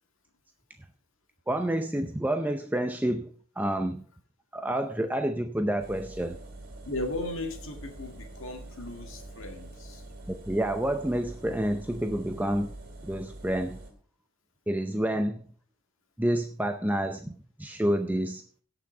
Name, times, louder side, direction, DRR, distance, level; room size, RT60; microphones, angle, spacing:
voice 1, 1.5-4.0 4.5-6.4 10.3-12.7 13.0-13.8 14.7-15.4 16.2-18.4, right 1 dB, 10° right, 0.6 m, -29 dB
sound 1, 5.8-13.9, right 1 dB, 40° right, 3.0 m, -45 dB
voice 2, 6.8-10.0, left 2 dB, 60° left, 1.9 m, -36 dB
17.0 x 6.1 x 4.3 m
head